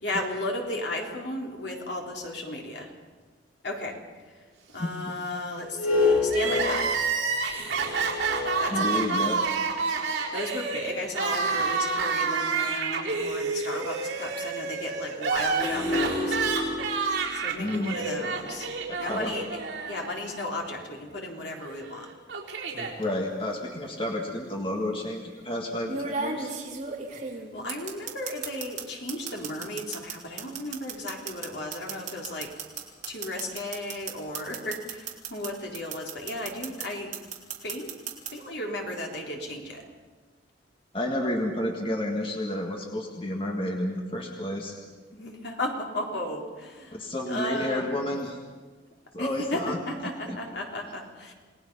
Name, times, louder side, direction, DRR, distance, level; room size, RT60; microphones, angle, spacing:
voice 1, 0.0-2.9 3.6-4.5 4.7-7.0 8.6-9.3 10.0-16.4 17.3-18.7 19.0-19.6 19.9-22.1 27.5-32.6 33.1-37.1 37.6-37.9 38.3-39.9 45.1-48.1 49.2-51.3, left 1 dB, 65° left, 0 dB, 3.7 m, -35 dB
sound 1, 5.6-9.5 10.2-10.3 15.5-19.8, left 3 dB, 50° left, 5.7 m, -30 dB
Crying sobbing, 6.3-20.4 20.7-20.8 21.8-22.9, right 5 dB, 65° right, 4.3 m, -29 dB
voice 2, 8.7-9.4 17.6-18.0 18.9-19.3 23.0-26.5 40.9-44.8 46.9-48.4 49.1-49.8 50.3-50.4, left 1 dB, 30° left, 1 dB, 1.8 m, -30 dB
sound 2, 22.7-23.0 24.2-24.3 25.9-28.8 29.1-35.5 35.7-36.9 37.1-38.3, right 5 dB, 40° right, 3.3 m, -34 dB
29.0 x 19.0 x 5.5 m, 1.4 s
head